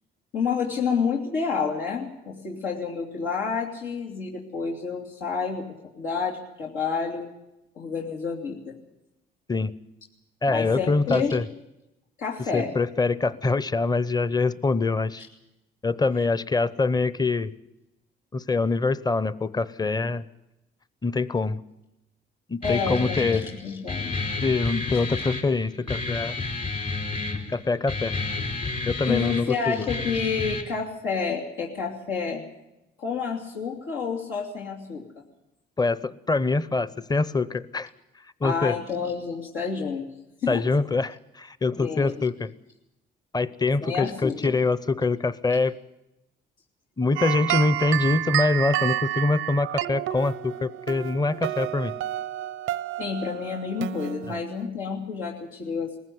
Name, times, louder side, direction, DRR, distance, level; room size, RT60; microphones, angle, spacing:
voice 1, 0.3-5.7 6.0-7.3 7.8-8.8 10.5-11.4 12.2-12.7 15.2-15.3 22.6-24.2 29.1-32.4 33.0-35.0 38.4-40.1 40.4-40.6 41.8-42.2 43.8-44.6 53.0-56.0, left 5 dB, 85° left, -4 dB, 3.0 m, -29 dB
voice 2, 10.4-11.4 12.5-15.2 15.8-17.5 18.3-20.2 21.0-21.6 22.5-23.5 24.4-26.4 27.5-28.2 28.8-29.9 35.8-37.9 38.4-38.8 40.5-42.5 43.3-45.8 47.0-51.9 54.3-54.4, left 3 dB, 20° left, 17 dB, 0.8 m, -24 dB
Guitar, 22.6-30.6, left 3 dB, 45° left, 4.1 m, -31 dB
sound 1, 47.2-54.7, right 13 dB, 90° right, 0.7 m, -30 dB
19.5 x 15.5 x 9.5 m, 0.93 s
cardioid pair, 90°, 20 cm